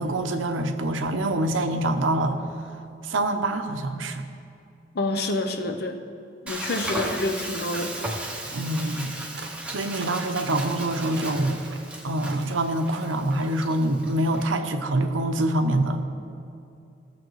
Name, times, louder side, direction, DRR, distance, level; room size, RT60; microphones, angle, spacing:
voice 1, 0.0-2.4 3.0-4.3 8.5-9.3 9.7-11.6 12.0-16.1, right 1 dB, 90° right, 6 dB, 0.7 m, -25 dB
voice 2, 4.9-6.0 6.4-8.0, left 2 dB, 55° left, 5 dB, 0.7 m, -28 dB
Frying (food), 6.5-14.5, right 1 dB, 5° right, 0.8 m, -36 dB
sound 1, 9.4-9.6 9.9-10.7 11.1-11.9 12.2-12.5 12.9-13.2, right 4 dB, 55° right, 0.8 m, -42 dB
15.5 x 7.0 x 3.2 m, 2.6 s
head